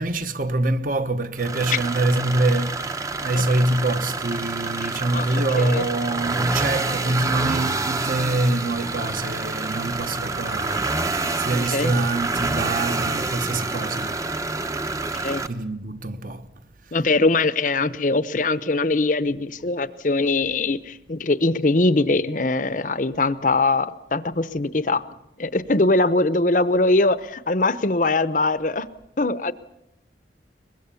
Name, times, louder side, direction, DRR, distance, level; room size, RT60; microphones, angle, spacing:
voice 1, 0.0-14.1 15.5-16.4, right 2 dB, 45° right, 1.1 m, -25 dB
sound 1, 1.4-15.5, right 3 dB, 20° right, 0.8 m, -27 dB
voice 2, 4.8-5.8 11.7-11.9 15.1-15.4 16.9-25.1 25.4-28.9 29.2-29.5, left 2 dB, 45° left, 0.8 m, -22 dB
23.0 x 21.5 x 7.0 m
head